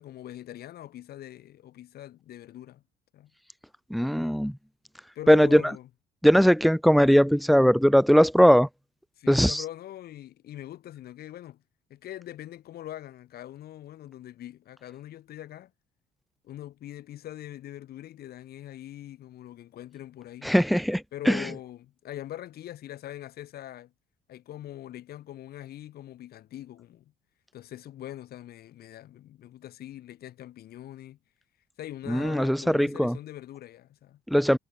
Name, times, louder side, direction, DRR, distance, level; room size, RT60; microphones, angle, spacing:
voice 1, 0.0-2.8 3.1-3.3 5.1-5.8 9.2-11.6 11.9-15.7 16.4-20.5 21.1-23.9 24.3-27.1 27.5-31.2 31.8-34.2, left 13 dB, 65° left, 5.7 m, -42 dB
voice 2, 3.9-4.6 5.3-5.6 6.2-8.7 9.3-9.6 20.4-21.5 32.1-33.2 34.3-34.6, equal, ahead, 0.6 m, -20 dB
cardioid pair, 110°, 17 cm